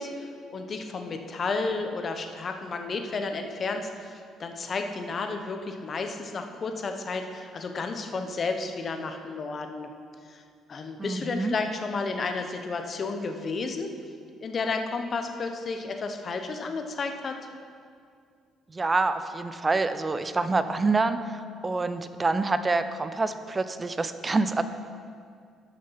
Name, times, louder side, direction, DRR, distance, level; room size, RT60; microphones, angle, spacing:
voice 1, 0.0-9.9 10.3-10.4 10.7-13.9 14.4-17.4, left 4 dB, 40° left, 5 dB, 0.9 m, -32 dB
voice 2, 11.0-11.5 18.7-24.6, right 3 dB, 20° right, 11 dB, 0.5 m, -27 dB
12.0 x 6.5 x 5.8 m, 2.2 s
cardioid pair, 125°, 0 cm